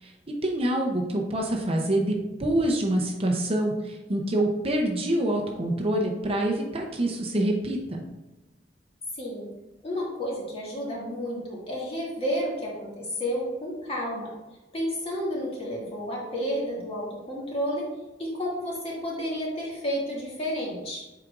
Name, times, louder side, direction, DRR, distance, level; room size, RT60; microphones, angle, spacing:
voice 1, 0.0-2.1 2.4-8.0, right 1 dB, 35° right, 1 dB, 0.7 m, -26 dB
voice 2, 9.2-9.5 9.8-14.3 14.7-17.9 18.2-21.0, equal, 35° left, -4 dB, 2.0 m, -31 dB
7.6 x 4.9 x 2.5 m, 1.1 s
head